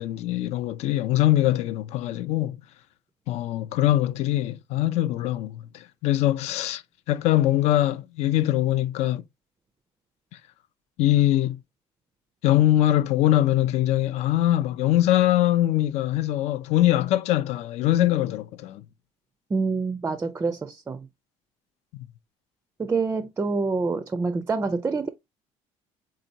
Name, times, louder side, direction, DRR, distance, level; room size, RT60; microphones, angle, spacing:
voice 1, 0.0-2.6 3.3-6.8 7.1-9.2 11.0-11.6 12.4-18.8, left 14 dB, 65° left, 0.4 m, -22 dB
voice 2, 19.5-21.1 22.8-25.1, right 4 dB, 20° right, 0.4 m, -26 dB
4.0 x 3.7 x 2.7 m
cardioid pair, 105°, 12 cm